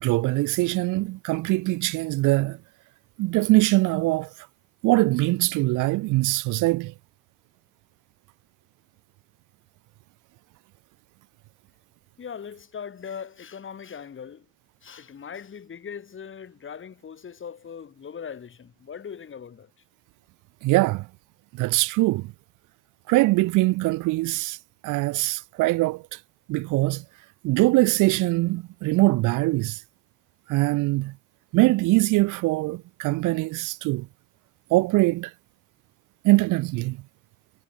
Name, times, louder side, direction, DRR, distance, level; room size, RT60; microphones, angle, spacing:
voice 1, 0.0-2.6 3.2-4.3 4.8-6.9 20.6-21.1 21.5-22.3 23.1-24.6 24.8-26.0 26.5-27.0 27.4-29.8 30.5-31.1 31.5-34.1 34.7-35.3 36.2-37.0, right 21 dB, 90° right, 0.5 m, -22 dB
voice 2, 12.2-14.5 14.8-19.7, left 7 dB, 40° left, 1.8 m, -40 dB
cardioid pair, 90°, 30 cm